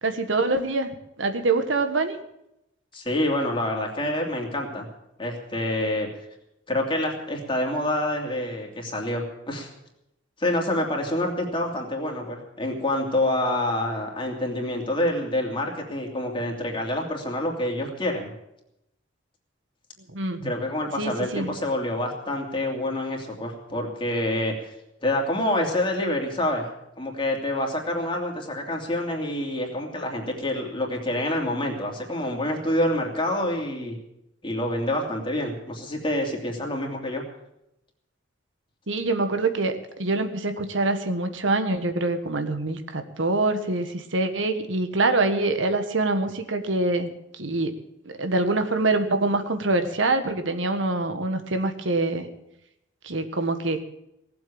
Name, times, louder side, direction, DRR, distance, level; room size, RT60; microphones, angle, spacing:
voice 1, 0.0-2.2 20.1-20.5 21.0-21.5 38.9-47.8 48.0-52.3 53.0-53.8, right 2 dB, 85° right, 8 dB, 1.5 m, -25 dB
voice 2, 2.9-4.9 5.2-6.1 6.7-9.7 10.4-18.3 20.4-24.5 25.0-26.7 27.0-34.0 34.4-37.2, left 1 dB, 30° left, 0 dB, 2.9 m, -27 dB
18.0 x 7.9 x 8.7 m, 0.84 s
head